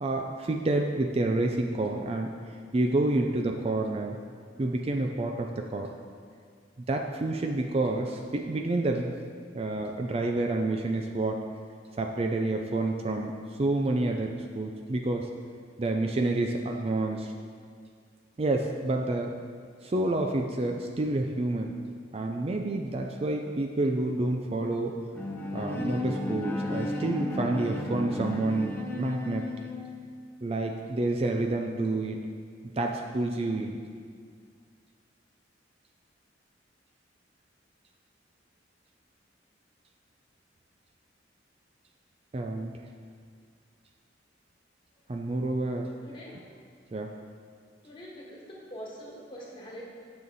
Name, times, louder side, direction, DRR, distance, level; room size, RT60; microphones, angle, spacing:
voice 1, 0.0-2.3 2.7-4.2 4.6-5.9 6.9-9.1 9.5-11.4 12.0-13.3 13.6-15.3 15.8-17.3 18.4-19.3 19.8-21.7 22.1-25.0 25.5-29.5 30.4-32.2 32.8-33.8 42.3-42.7 45.1-45.9 46.9-47.1, right 2 dB, 30° right, 3 dB, 0.4 m, -29 dB
Bowed string instrument, 25.1-30.1, left 2 dB, 10° left, 0.8 m, -34 dB
voice 2, 46.0-46.5 47.8-49.8, equal, 25° left, -4 dB, 1.8 m, -44 dB
9.3 x 6.9 x 4.1 m, 2.1 s
head